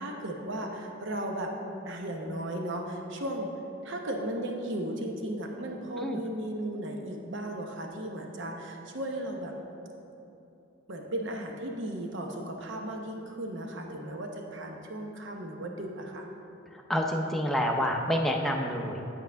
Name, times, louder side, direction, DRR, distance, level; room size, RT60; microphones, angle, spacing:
voice 1, 0.0-1.5 1.8-3.5 3.8-9.6 10.9-16.3, right 1 dB, 60° right, 2 dB, 0.8 m, -35 dB
voice 2, 16.7-19.0, equal, ahead, 0 dB, 0.6 m, -28 dB
8.7 x 8.2 x 3.4 m, 2.9 s
head